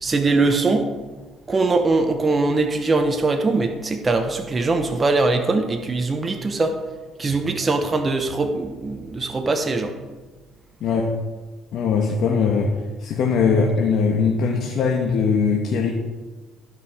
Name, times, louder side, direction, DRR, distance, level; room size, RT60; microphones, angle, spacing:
voice 1, 0.0-0.9 1.5-6.8 7.2-10.0, right 3 dB, 25° right, 5 dB, 0.9 m, -21 dB
voice 2, 10.8-11.1 11.7-15.9, left 5 dB, 65° left, 1 dB, 1.3 m, -21 dB
14.5 x 5.3 x 5.0 m, 1.3 s
cardioid pair, 110°, 0 cm